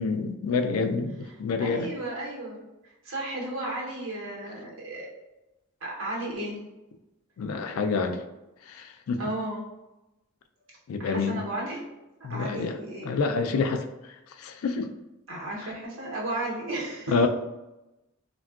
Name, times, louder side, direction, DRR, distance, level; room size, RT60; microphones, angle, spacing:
voice 1, 0.0-1.9 7.4-8.2 8.7-9.2 10.9-11.4 12.2-12.8 13.0-14.1 14.4-14.9 17.1-17.3, left 4 dB, 85° left, 6 dB, 0.3 m, -27 dB
voice 2, 1.6-2.7 3.0-5.1 5.8-6.6 9.2-9.6 11.0-11.9 12.3-13.1 15.3-17.3, right 1 dB, 70° right, -4 dB, 0.9 m, -34 dB
3.5 x 2.2 x 2.3 m, 0.98 s
head